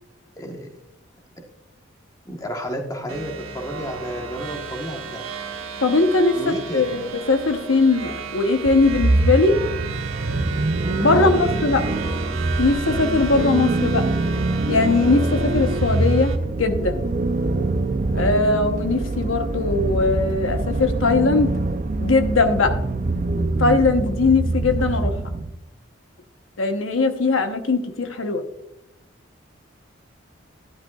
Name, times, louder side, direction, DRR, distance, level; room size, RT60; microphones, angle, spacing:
voice 1, 0.4-0.8 2.2-5.3 6.3-6.9 11.1-11.3, equal, 15° left, 2 dB, 1.2 m, -31 dB
sound 1, 3.1-16.4, right 5 dB, 85° right, 1.3 m, -34 dB
voice 2, 5.8-9.6 11.0-11.8 12.6-14.1 14.7-16.3 16.6-17.0 18.1-21.5 22.0-22.8 23.4-25.2 26.6-28.4, left 3 dB, 75° left, 6 dB, 0.9 m, -20 dB
sound 2, 8.7-25.5, right 2 dB, 40° right, 0.5 m, -24 dB
12.5 x 10.5 x 2.4 m, 0.87 s
head